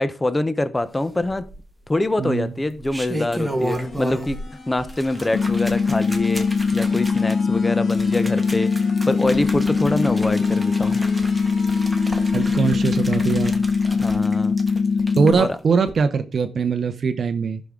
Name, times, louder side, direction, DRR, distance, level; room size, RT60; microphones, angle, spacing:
voice 1, 0.0-1.5 1.9-4.4 4.7-11.0 13.9-14.6 15.4-15.6, left 2 dB, 15° left, 0.6 m, -25 dB
sound 1, 1.2-1.8 2.6-4.5 4.8-15.4 15.8-15.9, right 1 dB, 5° right, 1.4 m, -33 dB
voice 2, 2.2-2.5 12.3-13.5 15.2-17.6, right 5 dB, 45° right, 0.6 m, -21 dB
sound 2, 3.2-12.8, left 1 dB, 40° left, 2.1 m, -39 dB
sound 3, 5.3-15.3, left 5 dB, 70° left, 1.1 m, -21 dB
15.0 x 6.2 x 3.7 m
wide cardioid pair, 155°, 0 cm